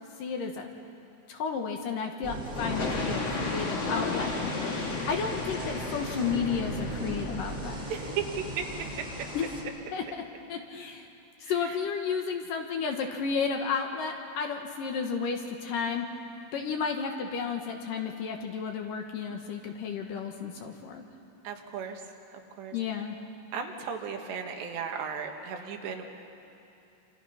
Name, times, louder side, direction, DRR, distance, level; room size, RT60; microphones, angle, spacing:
voice 1, 0.2-0.7 1.3-4.8 5.1-7.7 9.3-9.5 9.9-10.2 10.5-11.1 11.4-16.1 16.5-21.0 22.7-23.2, left 6 dB, 65° left, 3 dB, 2.5 m, -32 dB
sound 1, 2.2-9.6, right 1 dB, 15° right, 2.8 m, -38 dB
sound 2, 2.6-7.6, left 3 dB, 40° left, 3.2 m, -33 dB
voice 2, 7.9-8.2 11.4-11.5 21.5-22.0 22.6-22.7 23.5-26.1, right 7 dB, 85° right, 3 dB, 3.8 m, -35 dB
27.5 x 26.5 x 5.7 m, 2.7 s
omnidirectional pair, 4.8 m